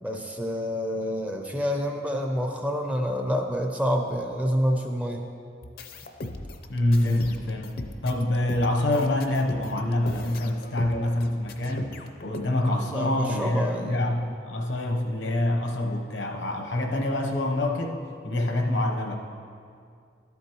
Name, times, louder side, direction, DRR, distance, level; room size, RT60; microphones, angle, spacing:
voice 1, 0.0-5.2 12.8-14.1, equal, 5° right, 3 dB, 0.5 m, -28 dB
sound 1, 5.6-12.4, left 1 dB, 55° left, 0.6 m, -38 dB
voice 2, 6.7-7.7 8.0-12.0 12.2-19.2, left 1 dB, 75° left, 2 dB, 0.9 m, -26 dB
12.0 x 8.2 x 3.0 m, 2.4 s
head